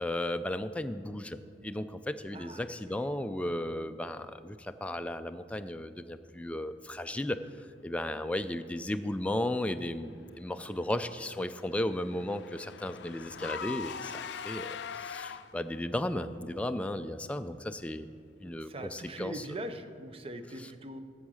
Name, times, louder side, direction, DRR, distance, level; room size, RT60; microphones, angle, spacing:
voice 1, 0.0-1.4 1.6-7.4 7.8-18.1 18.4-19.4, left 1 dB, 5° left, 9 dB, 0.3 m, -35 dB
voice 2, 2.3-3.0 18.6-21.0, right 1 dB, 35° right, 9 dB, 0.6 m, -42 dB
Car / Engine, 10.7-15.8, left 7 dB, 80° left, 0.4 m, -42 dB
11.5 x 7.2 x 6.3 m, 2.2 s
head